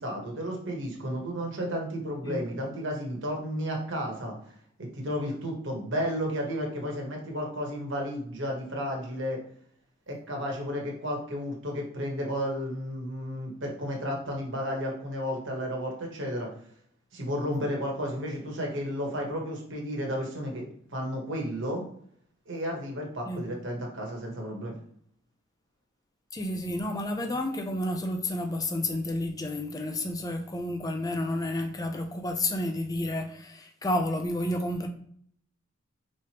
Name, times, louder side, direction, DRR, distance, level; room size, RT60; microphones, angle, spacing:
voice 1, 0.0-4.4 4.8-9.4 10.1-16.5 17.1-20.6 20.9-21.8 22.5-24.8, equal, 60° right, 1.2 m, -32 dB
voice 2, 26.3-34.9, left 1 dB, 15° left, 0.4 m, -30 dB
4.8 x 3.1 x 2.9 m
head